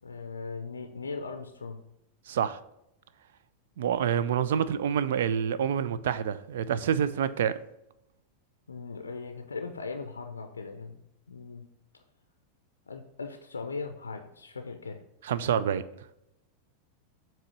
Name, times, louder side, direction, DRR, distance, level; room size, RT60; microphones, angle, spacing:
voice 1, 0.0-1.8 8.7-11.0 11.3-11.6 11.9-12.0 12.9-15.0, left 4 dB, 75° left, 6 dB, 0.5 m, -39 dB
voice 2, 2.3-2.6 3.8-7.5 15.3-15.8, right 8 dB, 60° right, 15 dB, 0.4 m, -27 dB
7.6 x 3.0 x 6.1 m, 0.83 s
figure-of-eight pair, 90°, 0 cm